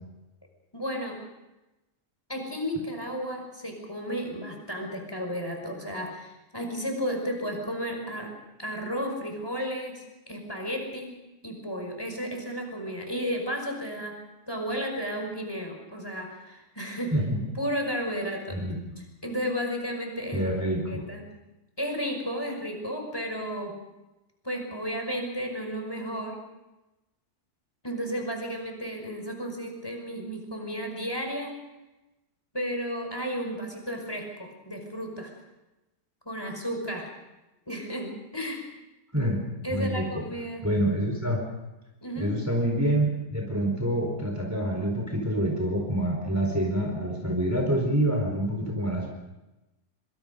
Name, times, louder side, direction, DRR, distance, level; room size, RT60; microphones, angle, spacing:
voice 1, 0.7-1.2 2.3-8.3 8.6-11.1 11.4-14.1 14.5-17.1 17.6-18.6 19.2-21.2 21.8-23.7 24.4-26.4 27.8-31.5 32.5-35.3 36.3-37.1 37.7-38.6 39.6-40.6 42.0-42.3, equal, 15° left, 2 dB, 5.4 m, -33 dB
voice 2, 20.3-21.0 39.1-39.4 39.7-40.2 40.6-41.4 42.2-49.1, right 1 dB, 10° right, 0 dB, 4.4 m, -27 dB
25.5 x 25.5 x 5.3 m, 1.0 s
omnidirectional pair, 1.6 m